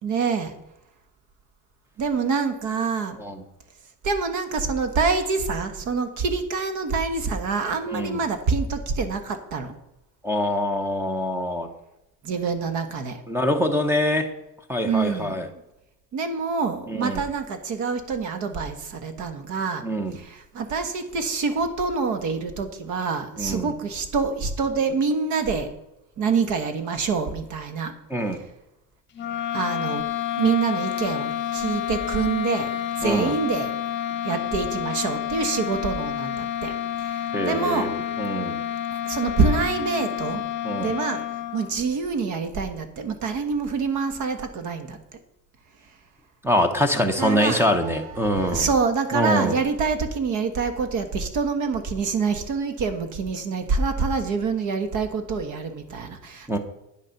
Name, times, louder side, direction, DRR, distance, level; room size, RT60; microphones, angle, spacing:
voice 1, 0.0-0.5 2.0-3.2 4.0-9.8 12.2-13.2 14.8-15.4 16.1-19.9 20.1-25.7 26.2-27.9 29.5-30.0 30.4-32.7 33.0-33.7 34.2-37.9 39.1-40.4 40.8-41.2 41.5-45.0 47.2-56.6, right 4 dB, 55° right, 9 dB, 1.4 m, -26 dB
voice 2, 7.9-8.2 10.2-11.7 13.3-14.3 14.7-15.5 16.9-17.2 19.8-20.1 23.4-23.7 28.1-28.4 33.0-33.3 37.3-38.6 40.6-40.9 46.4-48.7 49.1-49.6 56.5-56.6, equal, 5° right, 8 dB, 0.9 m, -24 dB
sound 1, 29.1-41.9, left 11 dB, 30° left, 1.3 m, -29 dB
9.8 x 6.6 x 5.8 m, 0.91 s
cardioid pair, 150°, 35 cm